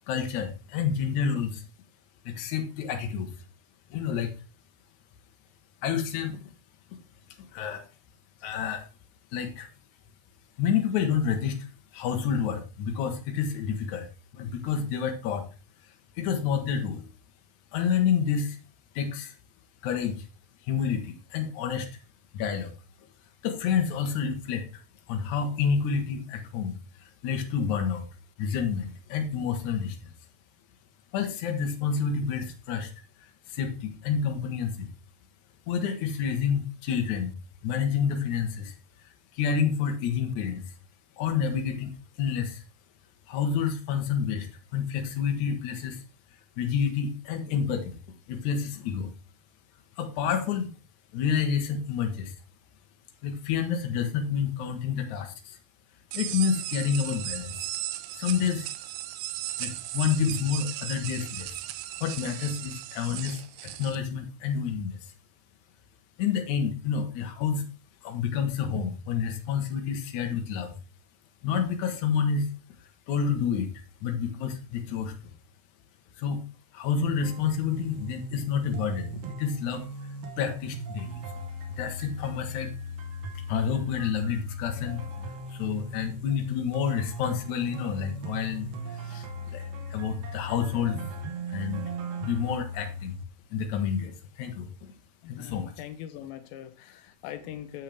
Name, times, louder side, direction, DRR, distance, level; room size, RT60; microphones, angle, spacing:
voice 1, 0.1-1.6 2.3-3.3 3.9-4.3 5.8-6.4 7.5-7.9 8.4-8.8 9.3-9.7 10.6-11.7 11.9-14.1 14.3-15.5 16.2-17.1 17.7-18.6 19.0-19.3 19.8-20.3 20.6-21.9 22.3-22.7 23.4-24.7 25.1-28.1 28.4-30.1 31.1-32.9 33.2-34.9 35.7-37.3 37.6-38.7 39.3-40.7 41.2-41.9 42.2-42.6 43.3-46.0 46.6-48.0 48.3-49.1 50.0-50.7 51.1-52.3 53.2-55.6 56.1-57.7 58.2-58.7 59.6-61.6 62.0-65.1 66.2-67.6 68.0-70.8 71.4-72.5 73.1-73.7 74.0-75.3 76.2-76.4 76.7-79.8 80.4-81.4 81.7-82.7 83.3-89.7 89.9-91.0 91.5-91.9 92.2-93.2 93.5-94.9 95.3-95.7, left 7 dB, 65° left, 2.3 m, -29 dB
sound 1, 56.1-64.0, right 14 dB, 85° right, 1.8 m, -36 dB
sound 2, 77.2-93.2, equal, 65° right, 1.7 m, -38 dB
voice 2, 95.2-97.8, left 11 dB, 90° left, 2.5 m, -41 dB
8.4 x 6.5 x 3.4 m
omnidirectional pair, 4.0 m